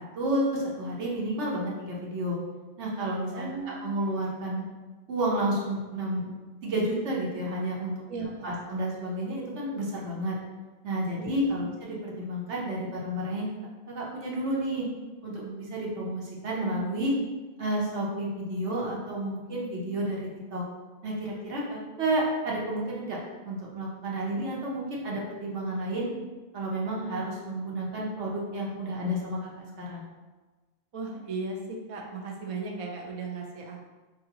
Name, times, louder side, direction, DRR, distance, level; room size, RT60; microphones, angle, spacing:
voice 1, 0.2-2.4 2.8-4.6 5.1-6.2 6.6-7.9 8.4-10.4 10.8-13.5 13.9-14.8 15.2-17.1 17.6-20.6 21.0-23.2 23.4-26.2 26.5-30.1, right 1 dB, 90° right, -3 dB, 1.2 m, -31 dB
voice 2, 3.3-3.9 8.1-8.6 11.2-11.6 30.9-33.9, right 3 dB, 45° right, 0 dB, 0.4 m, -37 dB
4.7 x 2.6 x 2.8 m, 1.2 s
omnidirectional pair, 1.1 m